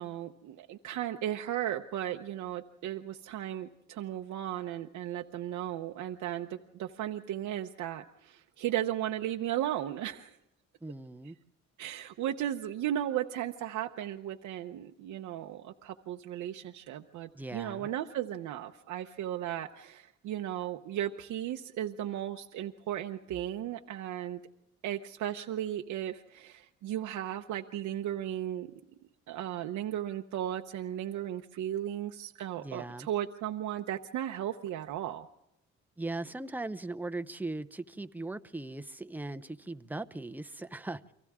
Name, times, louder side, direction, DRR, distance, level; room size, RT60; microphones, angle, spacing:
voice 1, 0.0-10.4 11.8-24.4 24.8-28.7 29.3-35.3, right 11 dB, 90° right, 0.9 m, -35 dB
voice 2, 10.8-11.4 17.3-17.9 32.6-33.1 36.0-41.0, right 2 dB, 5° right, 0.7 m, -39 dB
30.0 x 24.0 x 3.7 m
cardioid pair, 120°, 29 cm